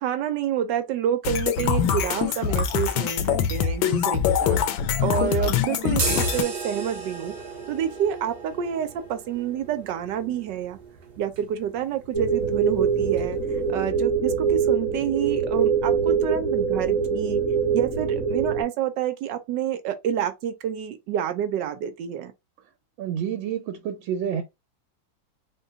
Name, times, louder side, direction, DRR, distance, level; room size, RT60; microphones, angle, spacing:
voice 1, 0.0-4.6 5.0-7.3 7.7-10.8 11.2-13.4 13.7-17.4 17.7-22.3, right 9 dB, 75° right, 1.2 m, -28 dB
sound 1, 1.2-6.4, left 8 dB, 80° left, 1.3 m, -24 dB
sound 2, 5.9-13.7, right 4 dB, 50° right, 0.7 m, -36 dB
sound 3, 12.1-18.6, right 6 dB, 5° left, 0.5 m, -23 dB
voice 2, 23.0-24.4, right 8 dB, 90° right, 1.4 m, -28 dB
3.8 x 2.2 x 3.8 m
omnidirectional pair, 2.1 m